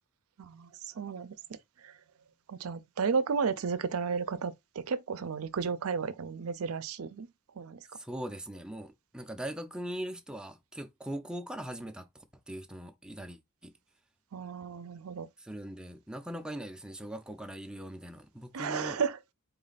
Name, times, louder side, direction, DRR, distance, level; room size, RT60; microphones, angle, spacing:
voice 1, 0.4-1.3 1.8-1.9 2.5-7.3 7.6-7.8 14.3-15.3 18.5-19.1, right 5 dB, 80° right, 0.5 m, -33 dB
voice 2, 7.9-13.7 15.4-19.0, right 1 dB, 5° right, 0.4 m, -41 dB
4.0 x 3.2 x 3.9 m
head